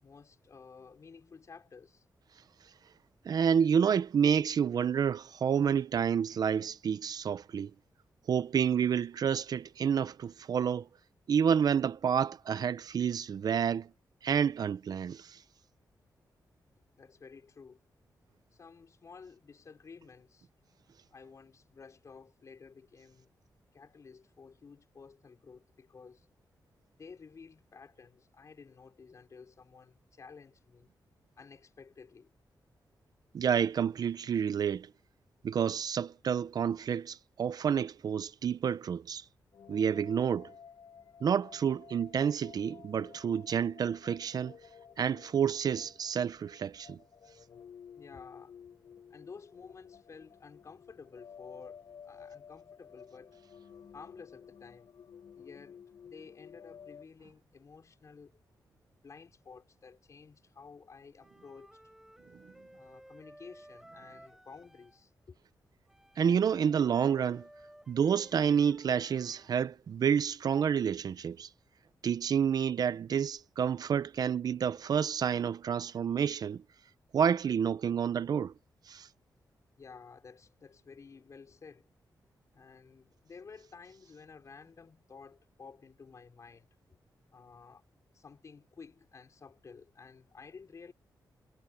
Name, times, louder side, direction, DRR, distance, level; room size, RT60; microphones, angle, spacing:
voice 1, 0.0-2.0 17.0-17.8 18.5-20.5 21.1-23.3 23.7-26.3 27.0-30.9 31.4-32.3 47.9-48.6 49.1-53.4 53.9-54.9 55.3-58.4 58.9-61.8 62.7-65.4 79.8-81.9 82.5-86.7 87.3-87.9 88.1-90.9, left 5 dB, 45° left, 5.0 m, -53 dB
voice 2, 3.2-7.7 8.3-10.9 11.3-13.9 14.2-15.4 33.3-34.9 35.4-39.2 39.7-40.5 41.2-44.6 45.0-47.0 66.2-67.5 67.9-71.5 72.0-76.6 77.1-78.5 78.9-79.1, right 7 dB, 60° right, 0.7 m, -29 dB
sound 1, 39.5-57.1, left 7 dB, 75° left, 4.3 m, -53 dB
Wind instrument woodwind instrument, 61.2-65.0 65.9-69.5, right 1 dB, 5° right, 4.6 m, -56 dB
wide cardioid pair, 145°, 7 cm